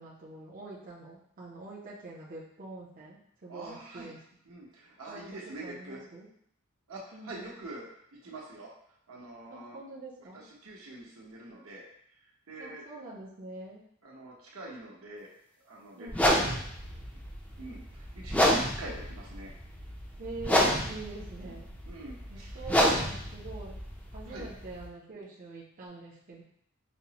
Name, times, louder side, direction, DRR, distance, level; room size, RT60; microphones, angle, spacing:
voice 1, 0.0-4.2 5.1-6.3 7.1-7.5 9.5-10.5 12.6-13.9 16.0-16.4 20.2-21.7 22.3-23.8 24.1-26.4, right 2 dB, 40° right, -6 dB, 0.5 m, -45 dB
voice 2, 3.5-4.1 4.4-6.0 6.9-8.7 9.1-9.8 10.6-11.9 12.2-12.8 14.0-15.3 15.6-16.6 17.6-19.5 21.4-21.6 21.9-22.9 24.3-24.5, right 2 dB, 75° right, -3 dB, 0.9 m, -44 dB
sound 1, 16.1-24.9, equal, 5° left, 0.4 m, -29 dB
5.2 x 2.0 x 2.9 m, 0.68 s
head